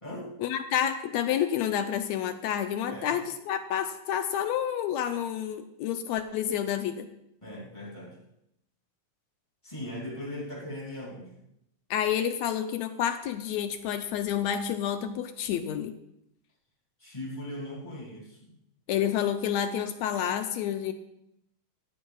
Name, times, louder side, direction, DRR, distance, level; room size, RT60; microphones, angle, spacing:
voice 1, 0.4-7.1 11.9-16.0 18.9-20.9, left 9 dB, 80° left, 9 dB, 1.6 m, -29 dB
voice 2, 7.4-8.2 9.6-11.3 17.0-18.4, left 1 dB, 10° left, -3 dB, 2.5 m, -39 dB
17.5 x 14.5 x 2.4 m, 0.79 s
omnidirectional pair, 3.7 m